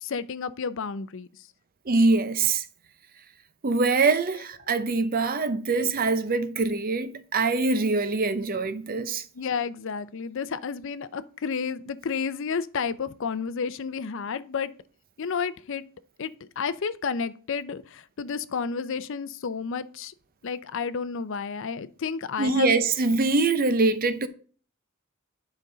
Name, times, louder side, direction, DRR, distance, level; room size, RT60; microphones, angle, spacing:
voice 1, 0.0-1.3 5.7-5.8 9.3-14.7 15.2-15.8 16.2-20.1 20.4-22.8, left 5 dB, 65° left, 0.5 m, -31 dB
voice 2, 1.9-2.6 3.6-9.2 22.4-24.3, right 3 dB, 45° right, 0.6 m, -24 dB
9.9 x 5.2 x 3.9 m
head